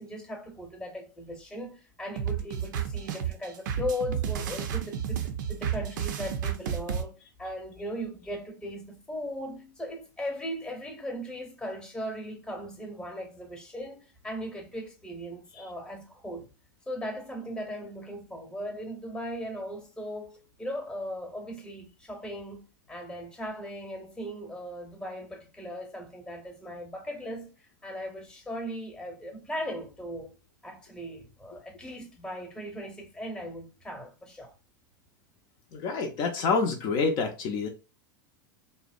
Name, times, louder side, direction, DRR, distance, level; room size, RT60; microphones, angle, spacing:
voice 1, 0.0-16.5 16.9-30.4 30.6-34.5, equal, 10° left, 0.8 m, -38 dB
sound 1, 2.2-7.0, right 8 dB, 70° right, 0.4 m, -31 dB
voice 2, 35.7-37.7, left 4 dB, 50° left, 0.5 m, -27 dB
2.7 x 2.0 x 2.4 m
hypercardioid pair, 95°, 11 cm